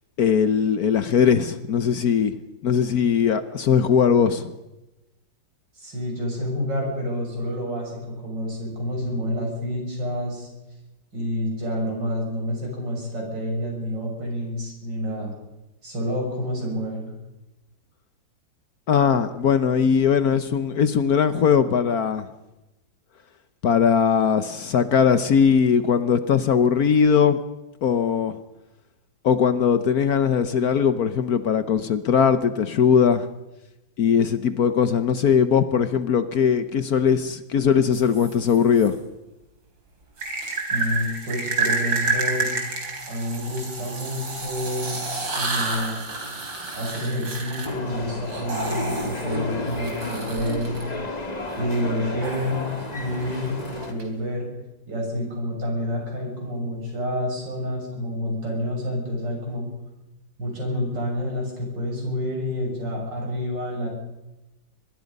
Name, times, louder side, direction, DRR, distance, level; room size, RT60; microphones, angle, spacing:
voice 1, 0.2-2.4 2.6-4.5 18.9-22.3 23.6-27.4 27.8-28.3 29.2-33.3 34.0-39.0, left 7 dB, 60° left, 11 dB, 1.3 m, -20 dB
voice 2, 5.8-10.5 11.1-15.3 15.8-17.1 40.7-42.5 43.1-45.0 45.4-46.0 46.7-50.8 51.6-52.6 52.9-53.5 53.9-54.5 54.9-59.6 60.4-63.9, equal, 70° right, 0 dB, 7.5 m, -28 dB
sound 1, 37.9-38.9 40.2-50.8 52.2-54.0, right 4 dB, 85° right, 4.4 m, -30 dB
sound 2, 47.6-53.9, left 2 dB, 20° left, 1.8 m, -32 dB
24.0 x 21.0 x 5.4 m, 1.0 s
omnidirectional pair, 2.0 m